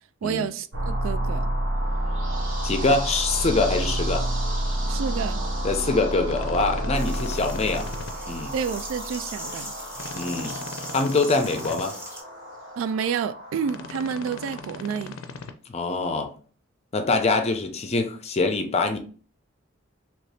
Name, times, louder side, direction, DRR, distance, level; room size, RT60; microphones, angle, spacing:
voice 1, 0.2-1.5 4.9-5.4 8.5-9.7 12.8-15.2, right 7 dB, 85° right, 0.3 m, -29 dB
sound 1, 0.7-14.6, right 1 dB, 70° right, 0.9 m, -30 dB
voice 2, 2.6-4.3 5.6-7.9 8.3-8.5 10.1-10.6 10.9-12.0 15.7-16.3 16.9-19.0, left 3 dB, 35° left, 0.5 m, -24 dB
sound 2, 6.3-8.1 9.9-11.8 13.6-15.5, left 4 dB, 85° left, 0.5 m, -39 dB
sound 3, 6.9-12.2, equal, 10° right, 0.9 m, -40 dB
3.0 x 2.7 x 3.2 m
head